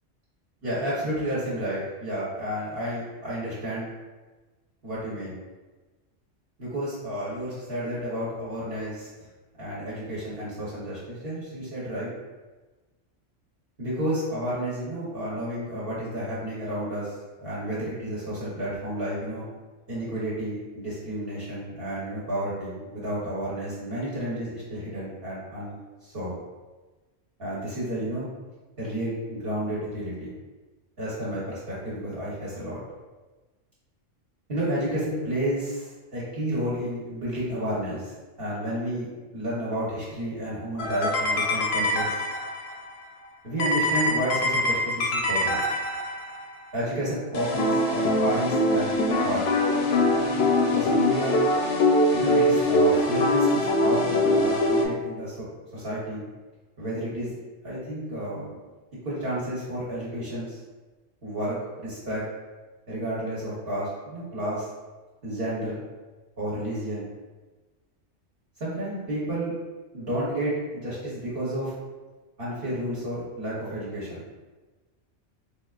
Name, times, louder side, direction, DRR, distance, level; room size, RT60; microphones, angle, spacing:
voice 1, 0.6-3.9 4.8-5.4 6.6-9.1 9.6-12.1 13.8-19.4 19.9-25.8 26.0-26.4 27.4-28.3 28.8-30.3 31.0-32.8 34.5-38.1 38.4-42.2 43.4-45.6 46.7-49.4 50.7-51.4 52.1-55.4 55.7-56.2 56.8-57.3 57.6-58.6 59.0-60.6 61.2-62.2 62.9-64.7 65.2-65.8 66.4-67.1 68.6-69.5 69.9-71.7 72.4-74.3, equal, 50° right, -8 dB, 1.1 m, -31 dB
sound 1, 40.8-42.7 43.6-46.4 47.3-54.8, left 1 dB, 65° left, 0.7 m, -23 dB
3.7 x 3.3 x 2.4 m, 1.2 s
omnidirectional pair, 1.3 m